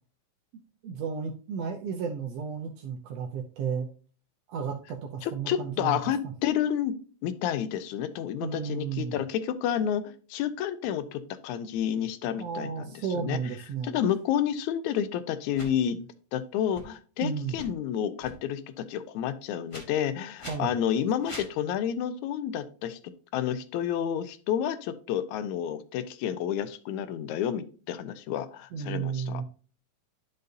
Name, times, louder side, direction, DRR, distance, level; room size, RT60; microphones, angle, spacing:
voice 1, 0.8-3.9 4.5-6.0 8.4-9.2 12.3-14.0 17.2-17.6 20.5-20.8 28.7-29.4, right 6 dB, 70° right, 1 dB, 1.7 m, -33 dB
voice 2, 5.2-7.0 7.2-10.0 10.3-13.4 13.8-16.0 16.3-23.0 23.3-29.4, left 9 dB, 90° left, 13 dB, 2.0 m, -30 dB
sound 1, 15.5-15.7 16.7-16.8 17.4-17.7 18.2-18.4 19.7-19.8 20.4-20.6 21.2-21.5, left 1 dB, 45° left, 0.4 m, -42 dB
10.5 x 5.3 x 2.7 m, 0.39 s
omnidirectional pair, 3.4 m